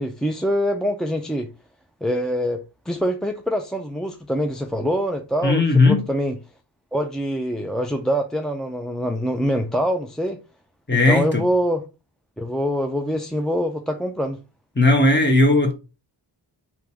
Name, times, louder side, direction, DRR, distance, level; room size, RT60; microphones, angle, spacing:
voice 1, 0.0-1.5 2.0-6.4 6.9-10.4 10.9-11.8 12.4-14.4, equal, ahead, 0.6 m, -24 dB
voice 2, 5.4-6.0 10.9-11.4 14.8-15.7, left 2 dB, 25° left, 1.4 m, -16 dB
3.8 x 2.9 x 4.6 m
cardioid pair, 45°, 45 cm